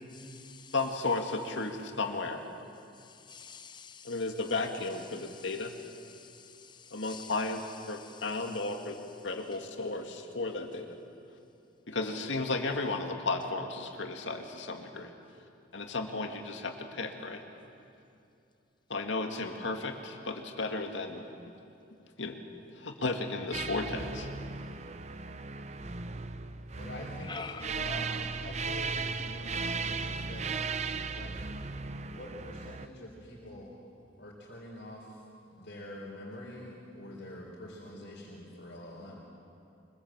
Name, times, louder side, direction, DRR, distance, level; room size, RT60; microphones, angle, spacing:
voice 1, 0.1-0.7 2.9-4.3 5.0-8.8 27.2-27.7, left 5 dB, 25° left, 9 dB, 0.8 m, -48 dB
voice 2, 0.7-2.4 4.0-5.7 6.9-7.6 7.9-9.0 9.2-11.0 11.9-15.1 15.7-17.4 18.9-21.2 22.2-22.4 22.8-24.3, left 3 dB, 75° left, 4 dB, 2.1 m, -34 dB
sound 1, 23.5-32.9, right 4 dB, 35° right, 0.7 m, -36 dB
voice 3, 26.8-30.5 31.1-31.3 32.1-33.7 34.2-35.2 35.5-39.2, left 1 dB, 60° left, -4 dB, 3.7 m, -45 dB
24.5 x 22.0 x 7.5 m, 2.6 s
head